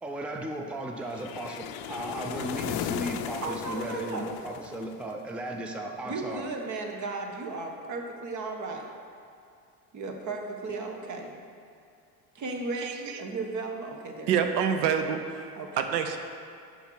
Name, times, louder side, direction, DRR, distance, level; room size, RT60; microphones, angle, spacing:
voice 1, 0.0-6.5, right 1 dB, ahead, 3 dB, 0.5 m, -36 dB
sound 1, 1.1-5.3, left 10 dB, 50° left, 0.6 m, -36 dB
voice 2, 3.4-4.3 6.0-8.9 9.9-11.3 12.3-14.4 15.6-15.9, right 3 dB, 35° right, 3 dB, 1.3 m, -35 dB
voice 3, 12.8-13.2 14.3-15.5 15.8-16.2, right 7 dB, 80° right, 6 dB, 0.8 m, -27 dB
7.1 x 6.1 x 5.6 m, 2.4 s
hypercardioid pair, 85°, 49 cm